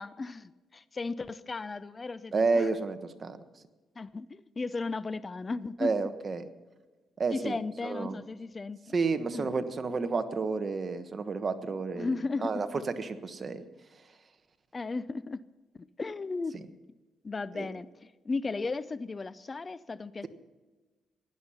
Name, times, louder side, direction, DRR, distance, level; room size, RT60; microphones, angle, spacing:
voice 1, 0.0-2.7 4.0-5.9 7.3-8.8 9.3-9.5 11.9-12.8 14.7-15.4 15.8-16.8 17.2-20.3, left 3 dB, 30° left, 17 dB, 0.5 m, -35 dB
voice 2, 2.3-3.4 5.8-6.5 7.2-7.5 7.8-8.2 8.9-12.1 12.4-13.6 16.5-16.6 17.5-17.7, right 4 dB, 40° right, 9 dB, 1.2 m, -30 dB
16.5 x 11.5 x 5.6 m, 1.2 s
cardioid pair, 90°, 0 cm